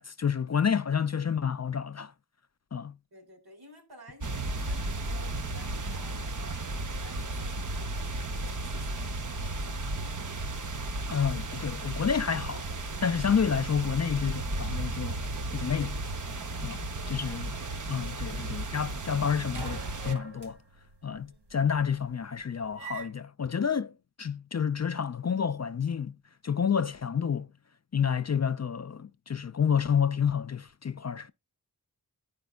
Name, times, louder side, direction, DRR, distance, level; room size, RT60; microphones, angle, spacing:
voice 1, 0.0-2.1 2.7-3.0 11.1-12.7 13.0-15.2 15.5-16.0 16.6-17.5 17.9-20.6 21.0-23.9 24.2-26.2 26.4-27.5 27.9-31.3, left 7 dB, 45° left, 0.4 m, -29 dB
voice 2, 3.1-10.0 17.0-17.7 21.2-21.4, right 1 dB, 70° right, 3.0 m, -54 dB
sound 1, 4.2-20.2, right 2 dB, 50° right, 0.7 m, -34 dB
sound 2, 18.4-19.0 19.3-23.1, right 7 dB, 90° right, 1.0 m, -45 dB
14.0 x 5.1 x 2.2 m
wide cardioid pair, 40°, 40 cm